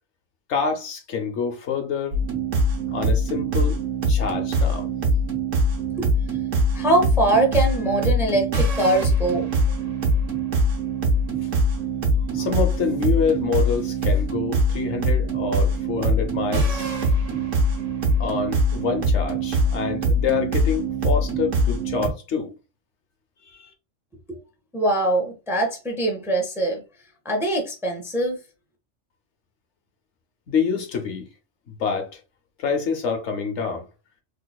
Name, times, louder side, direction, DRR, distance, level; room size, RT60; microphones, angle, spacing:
voice 1, 0.5-2.2 2.9-4.9 12.3-16.9 18.2-22.6 23.5-23.7 30.5-31.3 31.7-32.2 32.6-33.9, left 6 dB, 70° left, 1.0 m, -27 dB
sound 1, 2.1-22.1, right 1 dB, 80° right, 1.4 m, -23 dB
voice 2, 6.7-9.5 24.3-24.4 24.7-26.8 27.2-28.4, right 1 dB, 5° right, 0.6 m, -22 dB
3.9 x 2.8 x 2.3 m
omnidirectional pair, 1.3 m